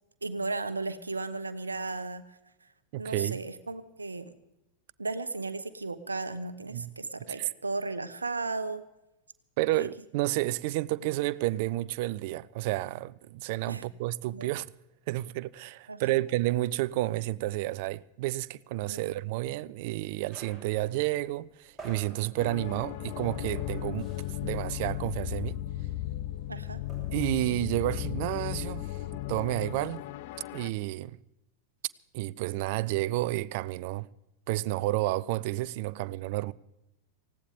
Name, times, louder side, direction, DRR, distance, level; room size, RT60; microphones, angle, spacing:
voice 1, 0.2-2.4 3.0-4.3 5.0-8.8 9.7-9.9 13.7-13.9 14.3-14.5 15.9-16.2 18.9-19.1 26.5-26.8, right 3 dB, 80° right, 0.9 m, -35 dB
voice 2, 2.9-3.4 6.7-6.9 7.3-7.5 9.6-14.7 15.1-24.1 24.4-25.6 27.1-29.0 29.3-30.0 30.5-31.2 32.1-34.1 34.5-36.5, right 17 dB, 50° right, 0.4 m, -31 dB
sound 1, 20.3-24.6 24.8-25.1 25.3-27.3, right 2 dB, ahead, 7.6 m, -50 dB
sound 2, 22.4-30.7, left 13 dB, 50° left, 0.5 m, -36 dB
19.5 x 16.0 x 3.6 m
figure-of-eight pair, 90°, 0 cm